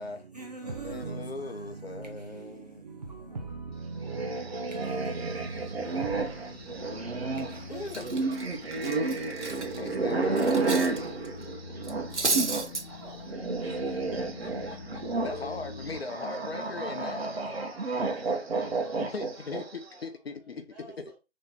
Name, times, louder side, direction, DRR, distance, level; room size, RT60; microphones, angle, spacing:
voice 1, 0.0-7.9, right 4 dB, 35° right, 0.6 m, -41 dB
voice 2, 0.8-2.8 7.7-8.2 9.8-10.7 15.2-17.3 19.1-20.6, left 3 dB, 60° left, 0.8 m, -38 dB
sound 1, 1.8-16.0, left 3 dB, 30° left, 0.5 m, -46 dB
sound 2, 4.0-12.7 13.0-19.8, right 3 dB, 60° right, 1.0 m, -31 dB
Cutlery silverware, 7.3-7.5 7.9-11.0 11.2-11.4 11.8-12.8, right 3 dB, 85° right, 1.2 m, -32 dB
voice 3, 11.9-15.0 16.2-20.2 20.7-21.2, right 2 dB, 10° right, 2.0 m, -50 dB
3.8 x 3.2 x 4.1 m
figure-of-eight pair, 155°, 34 cm